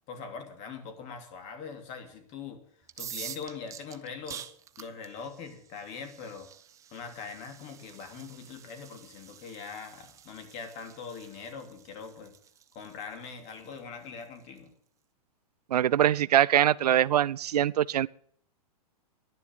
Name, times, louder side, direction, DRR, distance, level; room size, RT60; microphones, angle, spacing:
voice 1, 0.1-2.6 3.0-4.4 4.8-6.5 6.9-12.3 12.7-14.7, left 5 dB, 35° left, 3.0 m, -42 dB
sound 1, 2.8-14.6, right 9 dB, 15° right, 0.7 m, -48 dB
voice 2, 15.7-18.1, right 11 dB, 90° right, 0.5 m, -23 dB
11.0 x 10.5 x 9.0 m
hypercardioid pair, 145°, 20 cm